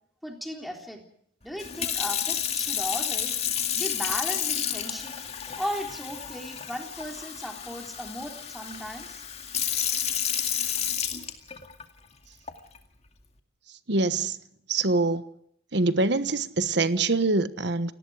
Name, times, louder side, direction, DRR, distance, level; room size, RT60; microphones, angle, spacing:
voice 1, 0.2-1.0 1.4-3.4 3.7-5.2 5.6-9.2, equal, ahead, 3.6 m, -36 dB
Sink (filling or washing) / Fill (with liquid), 1.6-11.8 12.5-12.8, left 9 dB, 35° left, 2.3 m, -30 dB
voice 2, 13.9-14.4 14.7-15.2 15.7-17.9, right 3 dB, 60° right, 1.2 m, -24 dB
29.0 x 19.0 x 4.9 m
head